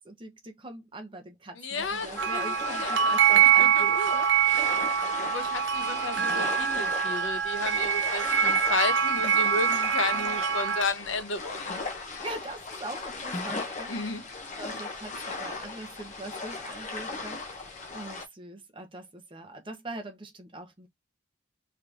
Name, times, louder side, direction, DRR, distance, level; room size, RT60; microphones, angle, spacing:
voice 1, 0.0-4.9 5.3-5.6 8.2-8.4 10.1-10.4 12.2-14.2 14.6-20.9, right 2 dB, 25° right, 0.8 m, -42 dB
voice 2, 1.6-4.1 5.2-11.7 13.9-14.2, left 3 dB, 85° left, 0.8 m, -33 dB
sound 1, 1.7-18.2, left 3 dB, 40° left, 0.7 m, -38 dB
sound 2, 2.2-10.8, right 8 dB, 75° right, 0.4 m, -24 dB
3.3 x 2.9 x 2.4 m
head